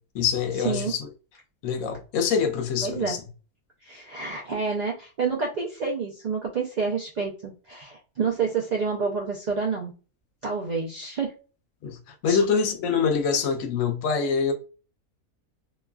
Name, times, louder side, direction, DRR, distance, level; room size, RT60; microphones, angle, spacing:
voice 1, 0.1-1.1 1.6-3.2 11.8-14.5, left 6 dB, 70° left, 0.9 m, -25 dB
voice 2, 2.8-3.2 3.8-9.9 10.4-11.3 12.3-12.4, right 5 dB, 75° right, 0.4 m, -28 dB
2.9 x 2.3 x 2.2 m
omnidirectional pair, 1.5 m